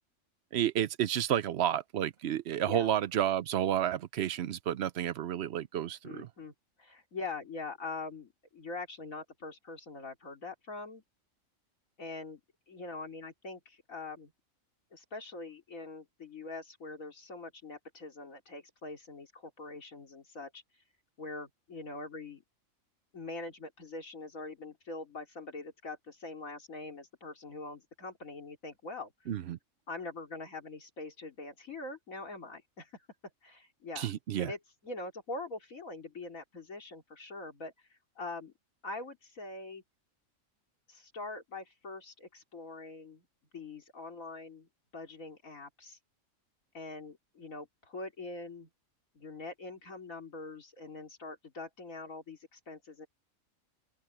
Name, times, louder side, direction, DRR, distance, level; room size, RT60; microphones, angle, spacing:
voice 1, 0.5-6.3 29.3-29.6 34.0-34.5, right 11 dB, 60° right, 0.8 m, -31 dB
voice 2, 6.0-11.0 12.0-12.4 12.7-14.3 14.9-20.6 21.2-22.4 23.1-29.3 29.9-33.0 33.4-34.1 34.4-38.5 38.8-39.8 40.9-43.2 43.5-46.0 46.7-48.7 49.1-53.1, left 3 dB, 80° left, 3.5 m, -43 dB
open air
omnidirectional pair, 1.4 m